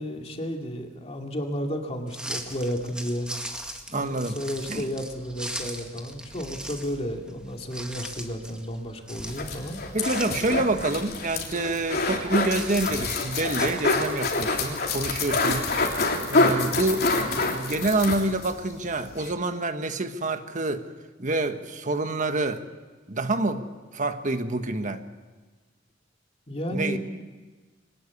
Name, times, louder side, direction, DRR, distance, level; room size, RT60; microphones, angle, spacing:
voice 1, 0.0-3.3 3.9-9.8 11.5-11.7 26.5-27.0, equal, 30° left, 2 dB, 2.6 m, -32 dB
sound 1, 2.1-14.3, right 1 dB, 5° right, 1.9 m, -40 dB
voice 2, 3.9-4.4 4.7-4.8 9.9-15.7 16.3-20.9 21.2-22.6 23.1-23.7 23.9-25.0 26.7-27.0, right 2 dB, 40° right, 8 dB, 1.4 m, -27 dB
sound 2, 9.2-18.5 18.9-19.0 19.2-19.3, left 3 dB, 55° left, 3.4 m, -26 dB
23.5 x 19.0 x 8.5 m, 1.3 s
head